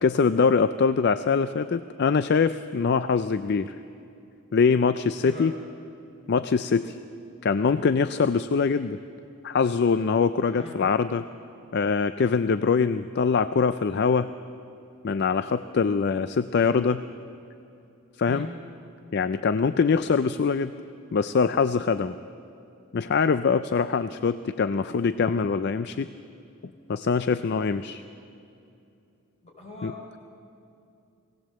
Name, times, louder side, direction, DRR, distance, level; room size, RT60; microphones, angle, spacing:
voice 1, 0.0-3.7 4.5-5.5 6.3-7.0 7.4-9.0 9.4-11.2 11.7-14.3 15.0-17.0 18.2-18.5 19.1-20.7 21.1-22.1 22.9-26.1 26.9-28.0 29.8-29.9, left 5 dB, 50° left, 12 dB, 0.4 m, -23 dB
voice 2, 5.2-5.5 10.5-10.8 18.2-18.5 29.4-30.2, left 2 dB, 30° left, -3 dB, 5.0 m, -41 dB
19.0 x 18.0 x 7.6 m, 2.6 s
head